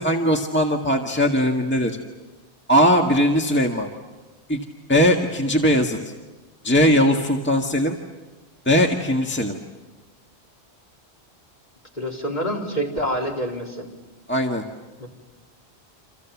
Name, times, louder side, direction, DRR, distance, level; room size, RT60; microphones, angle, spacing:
voice 1, 0.0-2.0 2.7-3.9 4.5-4.6 4.9-6.0 6.6-8.0 8.7-9.6 14.3-14.6, equal, 10° left, 2 dB, 1.8 m, -19 dB
voice 2, 12.0-13.9 15.0-15.1, equal, 40° left, -1 dB, 4.4 m, -27 dB
30.0 x 27.0 x 7.3 m, 1.2 s
omnidirectional pair, 1.1 m